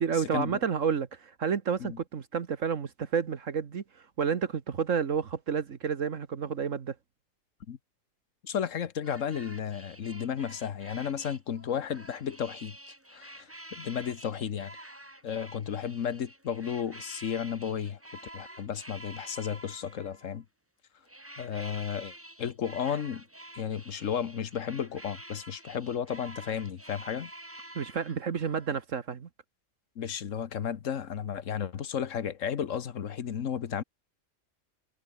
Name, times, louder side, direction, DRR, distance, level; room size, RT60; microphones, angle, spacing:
voice 1, 0.0-7.0 27.8-29.3, right 6 dB, 75° right, 1.7 m, -30 dB
voice 2, 8.4-12.7 13.1-14.7 15.2-18.0 18.3-20.4 21.4-22.1 22.4-23.2 23.5-27.3 30.0-33.8, left 8 dB, 75° left, 1.4 m, -33 dB
sound 1, 9.0-20.4 21.1-28.8, right 1 dB, 10° right, 2.0 m, -48 dB
omnidirectional pair, 1.3 m